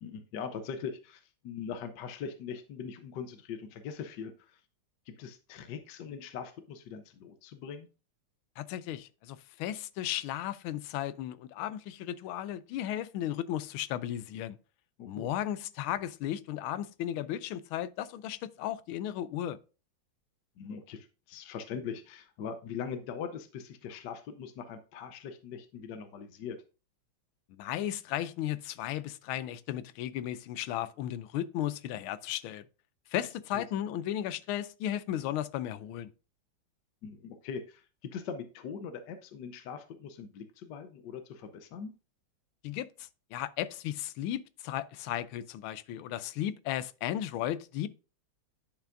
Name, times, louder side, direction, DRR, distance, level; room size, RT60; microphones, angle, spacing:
voice 1, 0.0-4.6 5.1-7.9 15.0-15.3 20.6-26.6 33.5-33.6 37.0-37.8 38.1-41.9, left 6 dB, 65° left, 1.2 m, -41 dB
voice 2, 8.6-14.6 15.0-19.6 27.5-32.6 33.1-36.1 42.6-47.9, left 12 dB, 85° left, 1.4 m, -35 dB
10.0 x 5.7 x 2.5 m
omnidirectional pair, 2.3 m